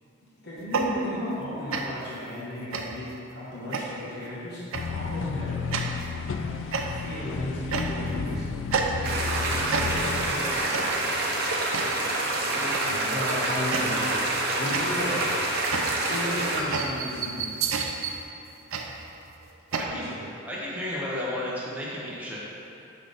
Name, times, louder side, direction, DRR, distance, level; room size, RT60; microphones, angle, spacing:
voice 1, 0.4-4.6 4.9-5.6 6.3-8.4 9.8-11.2 12.9-14.2 14.6-15.2 16.1-17.5 19.8-20.2, left 1 dB, 50° left, -9 dB, 1.5 m, -35 dB
sound 1, 0.6-1.4 1.7-2.1 2.7-3.1 3.7-4.2 4.7-5.0 5.7-6.1 6.7-7.2 7.7-8.2 8.7-9.4 9.7-10.2 10.7-11.1 11.7-12.1 12.7-13.1 13.7-14.2 14.7-19.9, right 4 dB, 85° right, 0.5 m, -31 dB
sound 2, 4.7-10.3, left 5 dB, 70° left, 0.4 m, -32 dB
sound 3, 9.0-16.6, right 2 dB, 50° right, 0.8 m, -27 dB
voice 2, 12.5-12.9 19.7-20.0 20.4-22.4, left 1 dB, 5° right, -7 dB, 1.1 m, -33 dB
6.4 x 5.8 x 3.6 m, 2.7 s
head